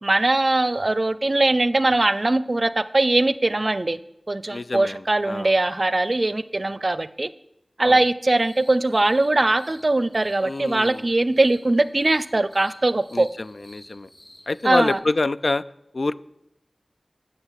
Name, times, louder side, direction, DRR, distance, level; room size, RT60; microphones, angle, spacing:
voice 1, 0.0-4.0 4.3-7.3 7.8-13.3 14.6-15.0, right 2 dB, 50° right, 15 dB, 0.5 m, -21 dB
voice 2, 4.5-5.6 7.8-8.0 10.4-11.1 13.1-14.1 14.5-15.6 15.9-16.2, left 2 dB, 70° left, 16 dB, 0.4 m, -26 dB
sound 1, 8.3-14.9, equal, ahead, 6.6 m, -51 dB
14.0 x 6.7 x 8.2 m, 0.83 s
wide cardioid pair, 55°, 0 cm